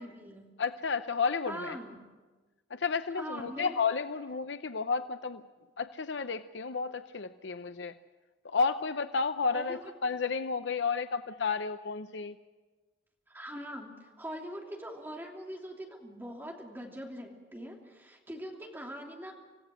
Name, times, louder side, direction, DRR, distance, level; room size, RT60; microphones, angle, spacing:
voice 1, 0.0-0.5 1.5-2.0 3.2-3.8 9.5-9.8 13.3-19.3, equal, 10° right, 0 dB, 3.0 m, -42 dB
voice 2, 0.6-1.8 2.7-5.4 5.8-8.0 8.4-12.4, left 5 dB, 75° left, 10 dB, 0.7 m, -32 dB
26.0 x 16.5 x 7.7 m, 1.3 s
head